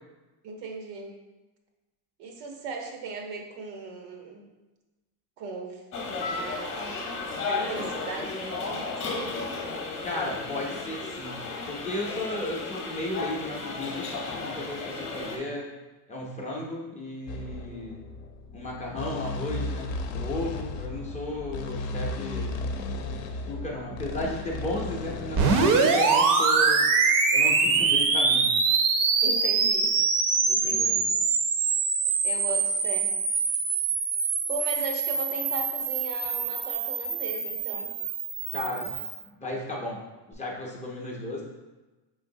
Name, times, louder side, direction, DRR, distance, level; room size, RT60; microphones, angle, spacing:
voice 1, 0.4-1.1 2.2-4.4 5.4-5.8 6.3-7.1 7.4-9.3 29.2-29.9 30.5-31.1 32.2-33.1 34.5-37.9, right 3 dB, 90° right, 2 dB, 1.0 m, -37 dB
sound 1, 5.9-15.4, left 3 dB, 35° left, 0.8 m, -34 dB
voice 2, 10.0-15.7 16.1-18.0 18.5-22.6 23.5-26.9 27.3-28.6 30.5-31.0 38.5-39.0 39.4-40.0 40.3-41.4, left 1 dB, 15° left, -3 dB, 0.4 m, -34 dB
sound 2, 17.3-25.7, left 2 dB, 70° left, 0.6 m, -35 dB
sound 3, 25.3-39.2, right 4 dB, 40° right, 0.5 m, -24 dB
5.3 x 3.7 x 2.6 m, 1.1 s
cardioid pair, 150°, 49 cm